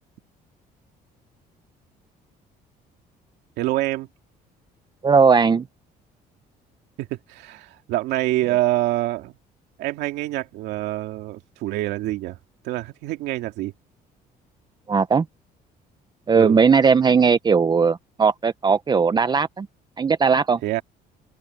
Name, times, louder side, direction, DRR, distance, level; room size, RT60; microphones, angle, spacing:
voice 1, 3.6-4.1 7.0-9.3 9.8-12.4 12.6-13.7 16.3-16.6 20.6-20.8, right 16 dB, 90° right, 2.3 m, -26 dB
voice 2, 5.0-5.6 14.9-15.2 16.3-19.7 20.0-20.6, right 5 dB, 25° right, 0.7 m, -18 dB
open air
cardioid pair, 110°, 17 cm